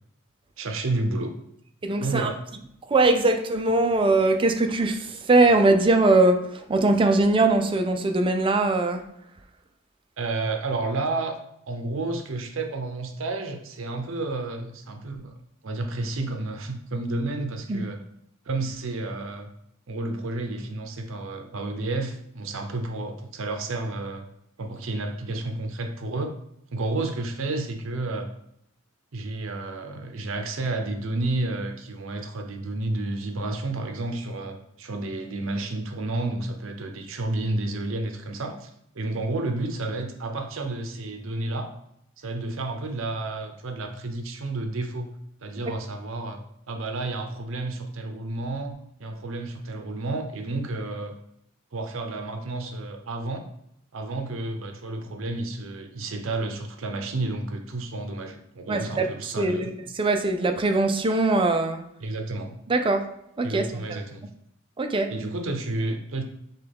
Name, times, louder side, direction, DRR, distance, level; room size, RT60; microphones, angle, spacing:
voice 1, 0.6-1.4 2.0-2.4 10.2-11.3 11.7-15.4 15.6-18.0 18.5-19.5 19.9-24.3 24.6-26.3 26.7-28.3 29.1-38.7 38.9-41.7 42.2-45.1 45.4-46.4 46.7-51.1 51.7-53.5 53.9-59.7 62.0-62.5 63.4-64.3 65.1-66.2, right 2 dB, 70° right, 5 dB, 0.6 m, -31 dB
voice 2, 1.8-2.3 2.9-9.0 17.7-17.8 58.7-59.1 59.4-59.7 59.9-61.8 62.7-63.0 63.4-64.0 64.8-65.1, right 2 dB, 25° right, 6 dB, 0.4 m, -21 dB
6.5 x 2.3 x 3.5 m, 0.75 s
head